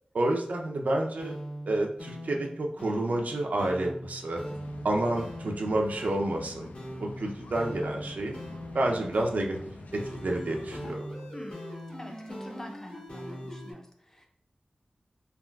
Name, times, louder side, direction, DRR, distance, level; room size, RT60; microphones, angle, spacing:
voice 1, 0.1-1.3 1.7-4.4 4.8-6.7 7.0-8.4 8.7-9.6 9.9-11.0, right 1 dB, 80° right, 1 dB, 0.5 m, -29 dB
sound 1, 1.2-13.7, equal, 65° left, 1.5 m, -42 dB
sound 2, 4.3-10.9, left 2 dB, 80° left, 0.3 m, -46 dB
voice 2, 11.3-11.6 12.0-14.3, left 1 dB, 20° left, 2 dB, 0.5 m, -45 dB
3.5 x 2.3 x 2.2 m, 0.65 s
wide cardioid pair, 90°, 3 cm